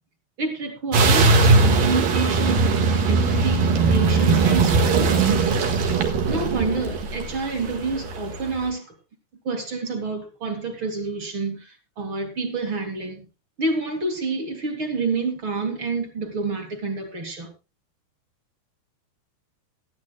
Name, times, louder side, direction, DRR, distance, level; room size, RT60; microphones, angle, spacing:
voice 1, 0.4-2.6 3.1-5.7 6.3-8.9 9.4-13.3 13.6-17.5, right 3 dB, 35° right, 2.7 m, -28 dB
sound 1, 0.9-8.3, right 3 dB, 65° right, 3.0 m, -19 dB
17.5 x 13.5 x 2.2 m
omnidirectional pair, 4.8 m